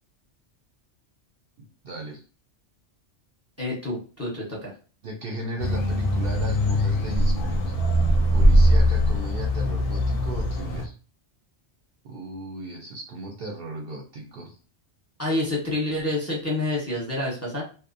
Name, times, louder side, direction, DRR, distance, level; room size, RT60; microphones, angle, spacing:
voice 1, 1.8-2.2 5.0-7.6 8.3-10.9 12.0-14.6, right 2 dB, 60° right, 1 dB, 0.7 m, -36 dB
voice 2, 3.6-4.7 15.2-17.6, left 2 dB, 15° left, -3 dB, 0.8 m, -28 dB
sound 1, 5.6-10.9, equal, 60° left, 0.6 m, -21 dB
2.8 x 2.0 x 2.5 m, 0.36 s
omnidirectional pair, 1.2 m